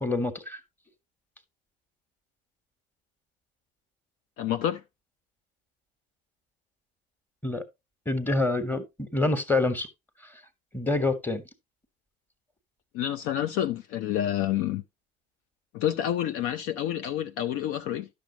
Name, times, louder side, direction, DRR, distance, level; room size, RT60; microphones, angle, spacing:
voice 1, 0.0-0.6 7.4-7.6 8.1-9.9 10.7-11.4, left 2 dB, 5° left, 1.3 m, -26 dB
voice 2, 4.4-4.8 12.9-14.8 15.7-18.1, left 11 dB, 45° left, 0.5 m, -28 dB
11.0 x 6.3 x 2.8 m
figure-of-eight pair, 70°, 31 cm